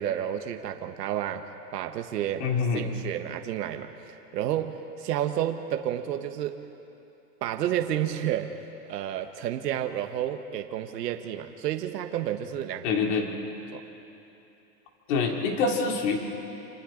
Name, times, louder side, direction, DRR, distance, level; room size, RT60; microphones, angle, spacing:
voice 1, 0.0-6.6 7.4-8.5 8.9-12.9 13.7-13.8, right 11 dB, 75° right, 6 dB, 1.4 m, -31 dB
voice 2, 2.4-2.8 12.8-13.3 15.1-16.2, left 5 dB, 45° left, 1 dB, 2.9 m, -25 dB
29.0 x 26.0 x 3.9 m, 3.0 s
supercardioid pair, 170°, 48 cm